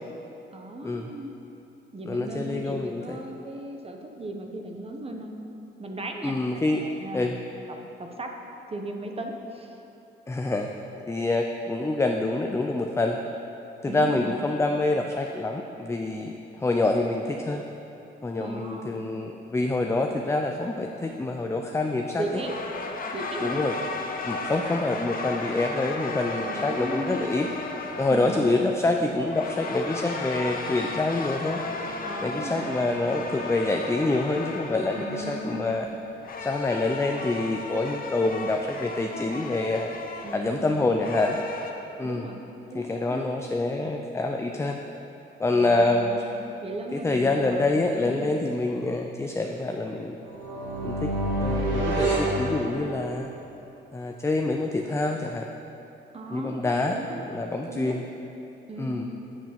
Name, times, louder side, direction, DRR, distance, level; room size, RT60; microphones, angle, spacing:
voice 1, 0.5-1.3 1.9-5.3 5.8-6.4 6.8-7.3 7.7-8.4 8.7-9.8 13.9-14.4 18.4-19.1 22.2-22.6 23.1-23.6 24.2-24.5 26.4-27.2 28.1-28.4 32.1-32.7 35.0-35.8 40.2-41.0 42.0-42.4 42.7-43.2 45.5-46.4 46.6-48.2 56.1-58.1 58.7-59.1, right 1 dB, 30° right, 3 dB, 1.1 m, -37 dB
voice 2, 2.1-3.2 6.2-6.8 7.1-7.4 10.3-10.7 11.1-13.2 13.8-17.6 18.2-22.4 23.4-23.8 24.2-27.5 28.0-31.6 32.2-35.9 36.4-39.9 40.3-41.4 42.0-42.2 42.7-44.8 45.4-46.2 46.9-50.2 50.8-51.1 51.4-53.3 53.9-55.5 56.3-58.1 58.8-59.1, left 2 dB, 15° left, 3 dB, 0.5 m, -26 dB
sound 1, 22.2-41.7, left 3 dB, 45° left, 0.9 m, -35 dB
sound 2, 50.3-53.3, right 1 dB, 75° right, 2.3 m, -27 dB
8.0 x 7.2 x 6.0 m, 3.0 s
cardioid pair, 90°, 20 cm